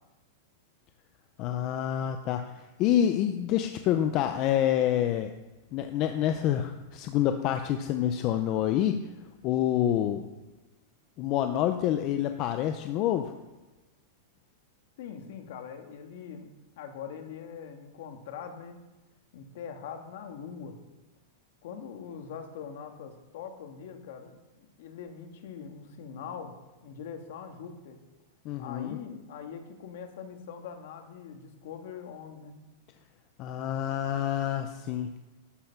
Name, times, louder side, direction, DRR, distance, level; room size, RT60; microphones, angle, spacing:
voice 1, 1.4-2.5 2.8-5.3 5.7-9.0 9.4-10.3 11.2-13.3 28.4-29.0 33.4-35.1, left 11 dB, 30° left, 7 dB, 0.5 m, -27 dB
voice 2, 15.0-16.5 16.8-18.8 19.3-20.8 21.6-26.5 26.8-28.0 28.6-32.6, left 7 dB, 55° left, 5 dB, 1.5 m, -42 dB
12.5 x 6.6 x 5.7 m, 1.1 s
supercardioid pair, 180°, 0 cm